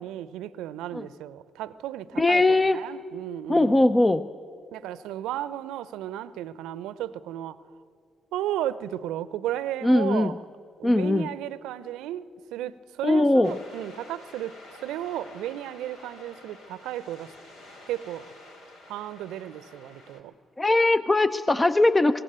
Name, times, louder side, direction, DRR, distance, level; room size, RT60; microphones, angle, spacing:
voice 1, 0.0-3.8 4.7-7.6 8.3-10.4 10.8-14.5 14.8-17.3 17.9-18.3 18.9-20.3, right 12 dB, 70° right, 17 dB, 0.7 m, -34 dB
voice 2, 2.2-2.8 3.5-4.3 9.8-10.3 10.8-11.3 13.0-13.5 20.6-22.2, left 2 dB, 20° left, 12 dB, 0.7 m, -20 dB
sound 1, 13.4-20.2, left 1 dB, 75° left, 3.1 m, -49 dB
23.5 x 20.5 x 8.9 m, 2.3 s
hypercardioid pair, 45°, 0 cm